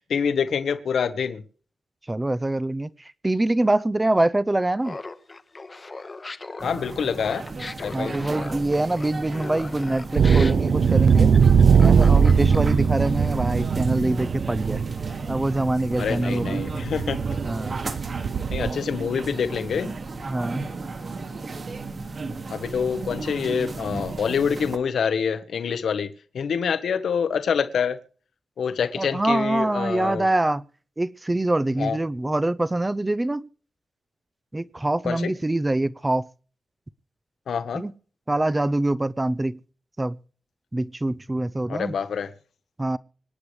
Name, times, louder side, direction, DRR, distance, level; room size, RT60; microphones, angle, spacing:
voice 1, 0.0-1.4 6.6-7.4 7.8-8.2 16.0-17.2 18.5-19.9 22.5-26.1 26.3-28.0 28.6-30.3 31.8-32.0 35.0-35.3 37.5-37.8 41.7-42.3, left 7 dB, 70° left, 1.1 m, -26 dB
voice 2, 2.1-2.9 3.2-5.0 7.9-11.4 11.8-14.8 15.3-16.6 17.4-17.8 20.3-20.7 29.0-30.6 31.0-33.5 34.5-36.3 37.7-37.9 38.3-39.6 40.0-40.2 40.7-41.9 42.8-43.0, right 2 dB, 15° right, 0.5 m, -24 dB
Laughter, 4.8-12.9, left 3 dB, 25° left, 0.9 m, -38 dB
sound 1, 6.6-24.8, right 3 dB, 35° right, 1.6 m, -35 dB
sound 2, 10.2-18.7, right 6 dB, 60° right, 0.5 m, -20 dB
25.5 x 9.7 x 3.2 m
wide cardioid pair, 175°, 0 cm